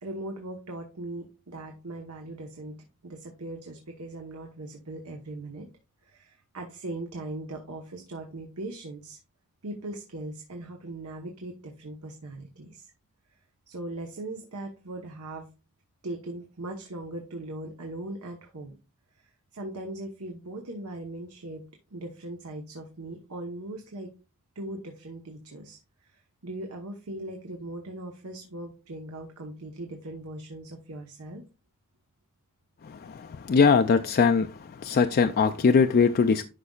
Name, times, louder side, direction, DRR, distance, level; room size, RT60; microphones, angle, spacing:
voice 1, 0.0-2.7 3.0-5.7 6.1-9.2 9.6-12.9 13.7-15.4 16.0-18.7 19.5-21.6 21.9-24.1 24.5-31.4, right 2 dB, 75° right, 1.1 m, -39 dB
voice 2, 32.9-34.5 34.8-36.4, left 5 dB, 45° left, 0.4 m, -21 dB
11.0 x 5.2 x 2.4 m
head